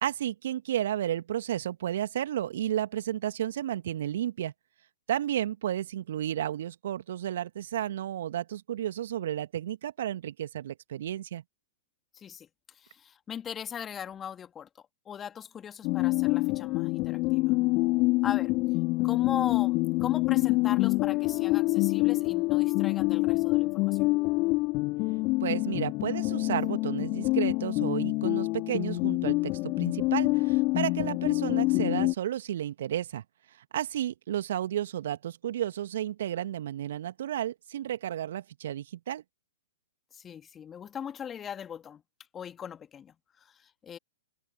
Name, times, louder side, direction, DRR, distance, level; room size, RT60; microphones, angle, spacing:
voice 1, 0.0-4.5 5.1-11.4 25.4-33.2 33.7-39.2, right 11 dB, 60° right, 2.1 m, -32 dB
voice 2, 12.1-17.5 18.2-18.5 19.0-24.0 40.1-42.0 42.3-44.0, left 8 dB, 20° left, 2.4 m, -40 dB
sound 1, 15.8-32.1, left 23 dB, 35° left, 2.0 m, -26 dB
figure-of-eight pair, 110°, 0 cm